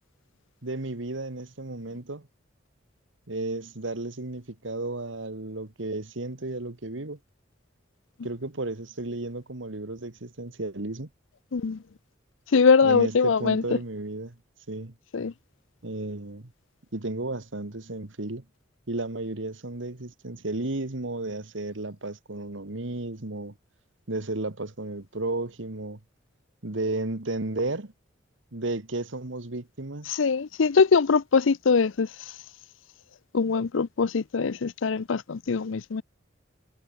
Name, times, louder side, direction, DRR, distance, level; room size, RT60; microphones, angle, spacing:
voice 1, 0.6-2.3 3.3-7.2 8.2-11.1 12.8-14.3 14.7-14.9 15.8-16.4 16.9-18.4 18.9-23.5 24.1-26.0 26.6-27.9 28.5-30.1, right 2 dB, 70° right, 1.7 m, -33 dB
voice 2, 12.5-13.6 15.1-15.3 30.1-32.1 33.3-36.0, left 5 dB, 75° left, 0.6 m, -22 dB
head